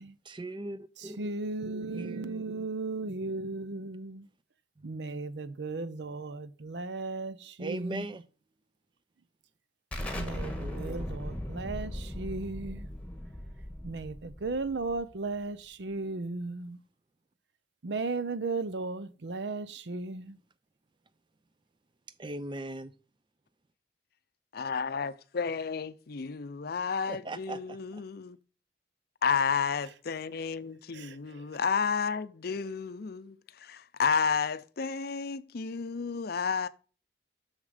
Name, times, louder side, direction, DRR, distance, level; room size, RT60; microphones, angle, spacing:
voice 1, 0.2-1.4 1.7-2.7 4.8-5.0 7.6-8.3 10.0-11.1 22.2-22.9 27.1-28.0, right 2 dB, 25° right, 0.6 m, -40 dB
voice 2, 1.2-4.3 4.8-8.1 10.2-12.9 13.8-16.8 17.8-20.4 30.9-31.2, right 3 dB, 70° right, 0.7 m, -36 dB
Explosion, 9.9-15.3, left 1 dB, 10° left, 1.4 m, -38 dB
voice 3, 24.5-28.4 29.2-36.7, left 6 dB, 60° left, 0.5 m, -31 dB
7.1 x 6.6 x 5.0 m
head